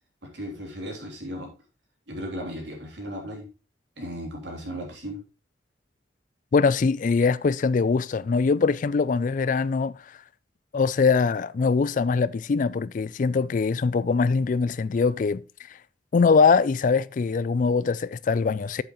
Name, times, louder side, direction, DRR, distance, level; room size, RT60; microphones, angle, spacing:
voice 1, 0.2-1.5 2.1-3.5 4.0-5.2, equal, 80° right, 3.2 m, -36 dB
voice 2, 6.5-9.9 10.7-15.4 16.1-18.8, left 4 dB, 45° left, 0.3 m, -22 dB
8.7 x 7.9 x 3.1 m
head